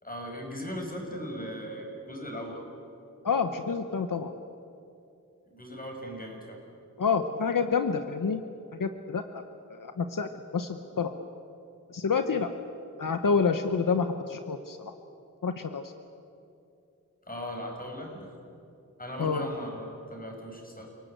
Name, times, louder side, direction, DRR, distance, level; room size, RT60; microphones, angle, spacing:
voice 1, 0.0-2.7 5.5-6.6 17.3-18.3 19.0-20.9, equal, 25° left, 1 dB, 6.1 m, -38 dB
voice 2, 3.2-4.3 7.0-8.4 8.8-9.4 9.7-11.1 11.9-12.5 13.0-14.9 15.4-15.8 19.2-19.5, left 5 dB, 80° left, 8 dB, 1.0 m, -28 dB
29.5 x 18.0 x 8.1 m, 2.7 s
wide cardioid pair, 60°, 32 cm